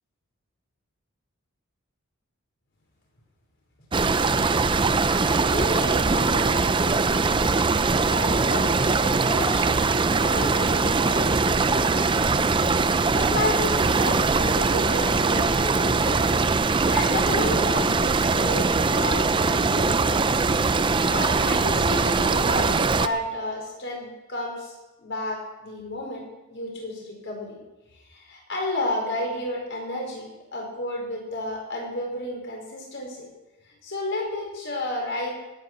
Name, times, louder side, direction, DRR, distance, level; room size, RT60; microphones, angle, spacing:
sound 1, 3.9-23.1, right 4 dB, 20° right, 0.4 m, -22 dB
voice 1, 5.1-7.4 7.7-12.4 12.9-16.2 16.9-20.3 21.0-27.6 28.1-33.3 33.7-35.3, left 1 dB, 55° left, -1 dB, 5.1 m, -32 dB
sound 2, 16.9-17.1 18.9-19.1, left 1 dB, 85° left, 5.9 m, -44 dB
18.0 x 9.5 x 6.2 m, 1.1 s
head